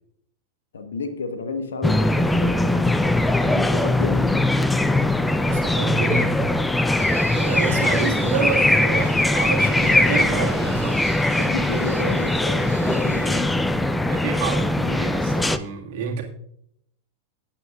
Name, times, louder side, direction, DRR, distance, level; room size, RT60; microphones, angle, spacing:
voice 1, 0.7-3.1 3.4-4.3 11.3-13.5, left 4 dB, 65° left, 1.2 m, -32 dB
sound 1, 1.8-15.6, left 1 dB, 5° left, 0.5 m, -21 dB
voice 2, 5.5-6.5 7.1-11.0 14.1-16.2, right 5 dB, 50° right, 1.9 m, -28 dB
Trumpet, 7.0-13.5, right 7 dB, 65° right, 0.7 m, -41 dB
17.5 x 9.0 x 2.4 m
figure-of-eight pair, 90°, 0 cm